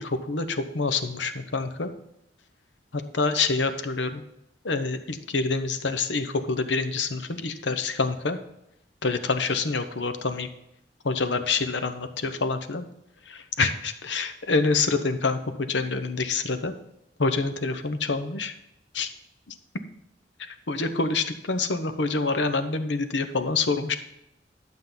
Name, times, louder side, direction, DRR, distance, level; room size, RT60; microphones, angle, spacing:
voice 1, 0.0-1.9 2.9-4.2 4.6-8.4 9.0-10.5 11.0-12.9 13.3-16.7 17.2-18.5 18.9-19.1 19.5-19.6 20.5-24.0, left 4 dB, 80° left, 9 dB, 0.9 m, -27 dB
11.5 x 7.4 x 4.0 m, 0.83 s
head